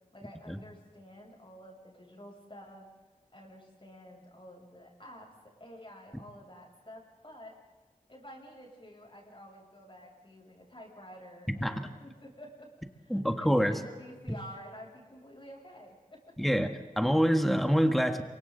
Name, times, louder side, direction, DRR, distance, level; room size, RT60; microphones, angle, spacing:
voice 1, 0.1-2.9 3.3-5.3 5.6-7.5 8.1-16.5, equal, 40° left, -2 dB, 7.9 m, -50 dB
voice 2, 11.5-11.9 13.1-13.8 16.4-18.2, equal, ahead, 7 dB, 1.7 m, -26 dB
27.5 x 23.5 x 4.1 m, 1.4 s
wide cardioid pair, 50°, 14 cm